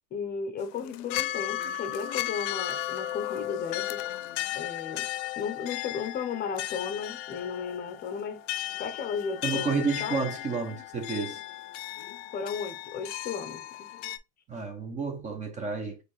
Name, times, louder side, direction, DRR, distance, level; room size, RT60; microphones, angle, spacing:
voice 1, 0.1-4.0 4.5-5.1 5.4-8.4 8.8-10.3 12.3-13.6, left 6 dB, 25° left, 0.6 m, -35 dB
sound 1, 0.6-14.2, left 14 dB, 70° left, 0.5 m, -35 dB
voice 2, 9.4-11.4 14.5-16.0, right 4 dB, 20° right, 0.5 m, -31 dB
4.3 x 3.1 x 3.1 m
cardioid pair, 160°, 37 cm